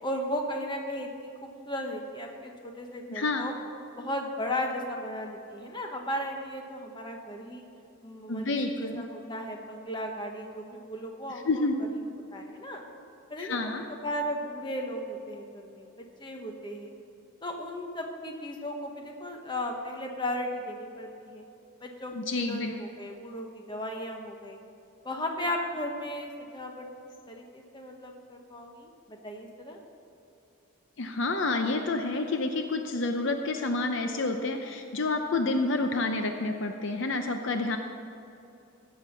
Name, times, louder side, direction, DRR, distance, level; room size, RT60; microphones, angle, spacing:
voice 1, 0.0-3.5 4.0-7.6 8.0-11.7 12.3-12.8 13.3-16.9 17.4-21.4 21.8-22.1 22.4-24.6 25.0-26.9 27.3-29.8, left 1 dB, 20° left, 2 dB, 1.1 m, -36 dB
voice 2, 3.1-3.5 8.3-9.0 11.4-11.7 13.4-13.9 22.1-22.7 31.0-37.8, left 3 dB, 55° left, 5 dB, 0.6 m, -29 dB
15.5 x 7.2 x 5.8 m, 2.7 s
head